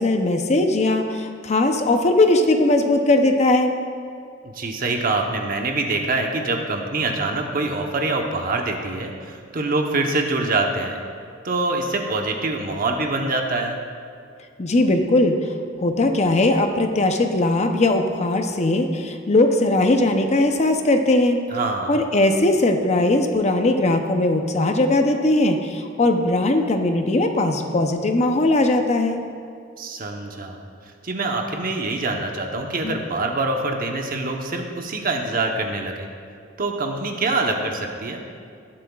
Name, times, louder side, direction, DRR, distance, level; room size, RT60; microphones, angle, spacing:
voice 1, 0.0-3.7 14.6-15.5 15.8-21.4 21.9-29.2 32.8-33.0, left 2 dB, 35° left, 5 dB, 0.6 m, -19 dB
voice 2, 4.4-11.0 11.4-13.8 21.5-21.9 29.8-30.6 31.0-36.1 36.6-38.2, right 2 dB, 50° right, 3 dB, 0.9 m, -25 dB
18.5 x 7.3 x 2.4 m, 2.3 s
head